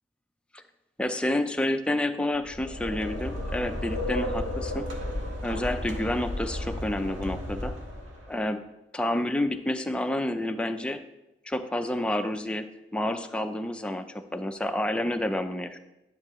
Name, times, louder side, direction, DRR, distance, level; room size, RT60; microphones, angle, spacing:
voice 1, 1.0-4.9 5.4-7.7 8.3-8.6 8.9-11.0 11.5-15.8, left 1 dB, 5° left, 7 dB, 0.4 m, -29 dB
sound 1, 2.3-8.3, left 1 dB, 75° right, 1.5 m, -33 dB
10.5 x 6.5 x 3.0 m, 0.97 s
head